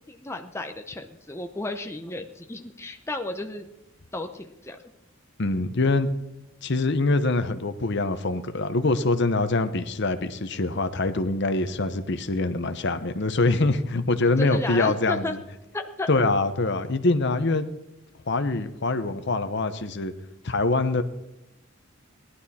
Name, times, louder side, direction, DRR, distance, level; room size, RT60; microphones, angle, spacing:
voice 1, 0.1-3.7 4.1-4.8 14.4-15.3 15.7-16.1, left 2 dB, 10° left, 5 dB, 0.7 m, -33 dB
voice 2, 5.4-6.1 6.6-15.4 16.1-17.7 18.3-20.1 20.4-21.0, left 2 dB, 55° left, 11 dB, 0.9 m, -24 dB
18.5 x 11.5 x 4.3 m, 0.92 s
head